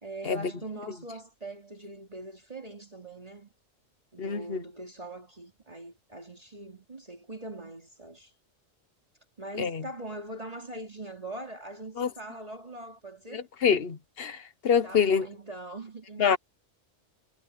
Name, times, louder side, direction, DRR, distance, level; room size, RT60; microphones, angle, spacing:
voice 1, 0.0-3.5 4.1-8.3 9.4-13.5 14.8-16.4, right 2 dB, 30° right, 2.9 m, -42 dB
voice 2, 4.2-4.6 9.6-9.8 12.0-12.1 13.3-15.3 16.2-16.4, left 7 dB, 55° left, 1.3 m, -26 dB
omnidirectional pair, 1.2 m